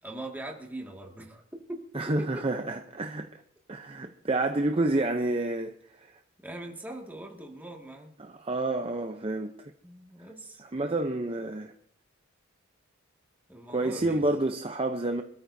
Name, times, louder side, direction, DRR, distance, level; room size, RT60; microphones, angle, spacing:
voice 1, 0.0-1.4 1.7-1.8 2.2-2.6 6.4-8.1 9.8-10.9 13.5-14.2, right 1 dB, 10° right, 2.0 m, -41 dB
voice 2, 1.9-3.4 3.7-6.1 8.2-9.7 10.6-11.7 13.7-15.2, right 2 dB, 25° right, 0.7 m, -29 dB
26.0 x 13.5 x 2.7 m
head